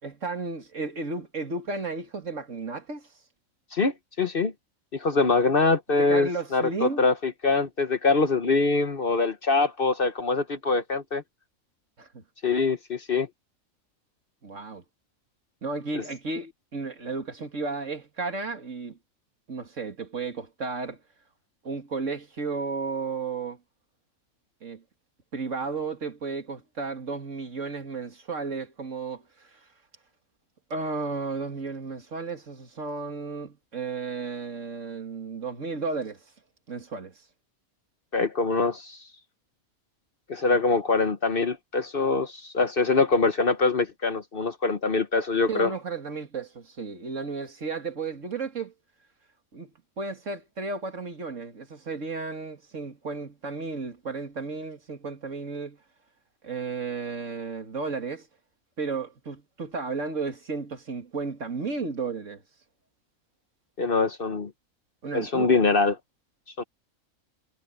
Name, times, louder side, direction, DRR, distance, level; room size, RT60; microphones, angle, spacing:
voice 1, 0.0-3.1 6.0-7.1 12.0-12.2 14.4-14.8 15.6-19.0 19.5-21.0 21.6-23.6 24.6-24.8 25.3-29.6 30.7-36.2 36.7-37.1 45.5-48.7 49.5-49.7 50.0-55.8 56.4-58.3 58.8-62.4 65.0-65.6, right 4 dB, 60° right, 2.6 m, -33 dB
voice 2, 3.7-4.5 4.9-11.2 12.4-13.3 15.9-16.0 38.1-39.0 40.3-45.7 63.8-64.5 65.1-66.0 66.6-66.7, left 3 dB, 45° left, 1.1 m, -24 dB
omnidirectional pair, 1.4 m